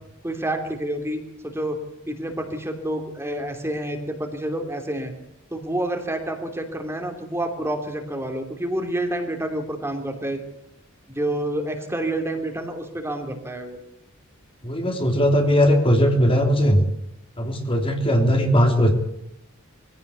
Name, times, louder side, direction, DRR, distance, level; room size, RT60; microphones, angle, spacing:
voice 1, 0.2-1.8 2.1-5.1 5.5-10.4 11.1-13.8, right 1 dB, 10° right, 3 dB, 3.0 m, -28 dB
voice 2, 14.6-16.8 17.4-18.9, equal, 25° left, 3 dB, 3.2 m, -19 dB
23.0 x 16.5 x 8.3 m, 0.79 s
head